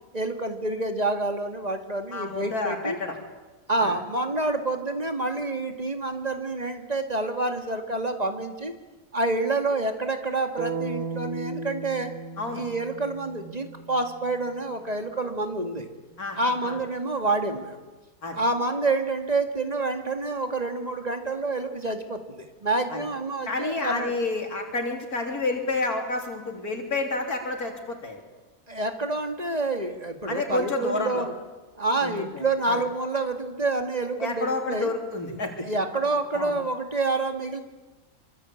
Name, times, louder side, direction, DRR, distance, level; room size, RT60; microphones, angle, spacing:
voice 1, 0.1-3.0 3.7-8.7 9.1-12.1 12.5-15.9 16.4-17.8 18.3-24.1 28.7-31.3 31.8-34.9 35.7-37.6, right 2 dB, 25° right, 6 dB, 2.3 m, -28 dB
voice 2, 2.1-3.2 3.8-3.9 12.4-12.6 16.2-16.8 18.2-18.4 22.9-23.0 23.5-28.2 30.3-31.2 32.0-32.8 34.2-35.7 36.3-36.5, left 3 dB, 90° left, 2 dB, 4.0 m, -30 dB
sound 1, 10.6-14.6, right 4 dB, 65° right, 2.2 m, -36 dB
26.0 x 25.0 x 8.6 m, 1.2 s
omnidirectional pair, 1.5 m